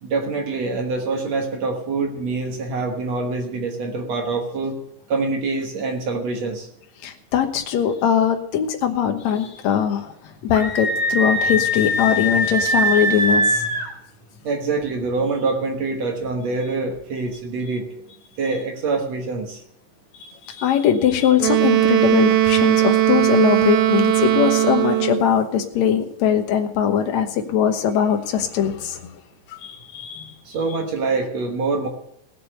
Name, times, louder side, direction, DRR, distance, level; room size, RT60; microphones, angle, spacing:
voice 1, 0.0-4.8 5.1-6.7 14.4-17.9 18.4-19.6 30.5-31.9, right 3 dB, 55° right, 3 dB, 2.3 m, -25 dB
voice 2, 7.0-13.8 20.2-29.2 29.5-30.4, left 9 dB, 65° left, 6 dB, 2.1 m, -21 dB
Screaming, 10.5-13.9, equal, 15° left, 2.4 m, -21 dB
Wind instrument woodwind instrument, 21.4-25.3, right 15 dB, 90° right, 2.8 m, -18 dB
17.5 x 6.8 x 6.5 m, 0.74 s
omnidirectional pair, 4.0 m